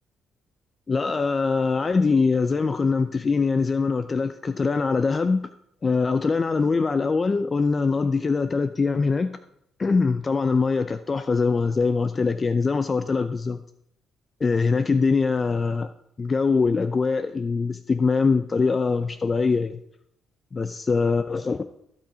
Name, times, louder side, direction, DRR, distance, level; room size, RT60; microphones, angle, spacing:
voice 1, 0.9-5.5 5.8-9.3 9.8-13.6 14.4-15.9 16.2-19.8 20.5-21.6, left 4 dB, 35° left, 11 dB, 0.5 m, -23 dB
14.5 x 5.6 x 5.1 m, 0.77 s
cardioid pair, 90°, 0 cm